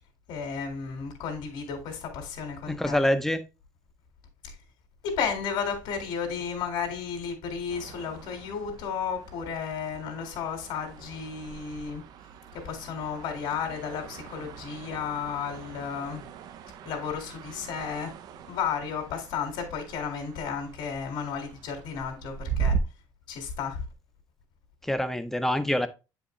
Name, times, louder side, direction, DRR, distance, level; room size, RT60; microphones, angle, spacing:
voice 1, 0.3-3.0 4.4-4.5 5.0-12.0 12.5-16.2 16.8-18.1 18.5-22.8 23.3-23.8, left 6 dB, 80° left, 2.2 m, -33 dB
voice 2, 2.7-3.4 24.8-25.9, left 1 dB, 5° left, 0.7 m, -25 dB
sound 1, 7.7-22.8, right 6 dB, 60° right, 0.7 m, -39 dB
8.8 x 5.0 x 3.2 m
cardioid pair, 165°, 8 cm